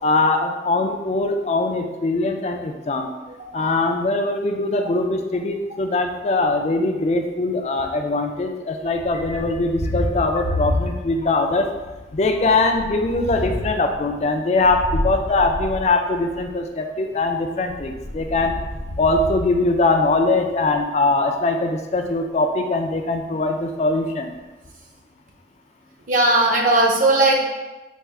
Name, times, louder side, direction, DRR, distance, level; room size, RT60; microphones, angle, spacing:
voice 1, 0.0-3.1 3.5-11.7 12.1-18.5 19.0-24.3, left 2 dB, 35° left, 5 dB, 0.3 m, -21 dB
voice 2, 3.4-3.7 26.1-27.4, right 2 dB, 45° right, -1 dB, 0.6 m, -18 dB
Thunder, 8.9-11.4 11.7-16.5 17.6-20.2, left 1 dB, 85° left, 0.8 m, -30 dB
4.4 x 2.4 x 3.4 m, 1.1 s
head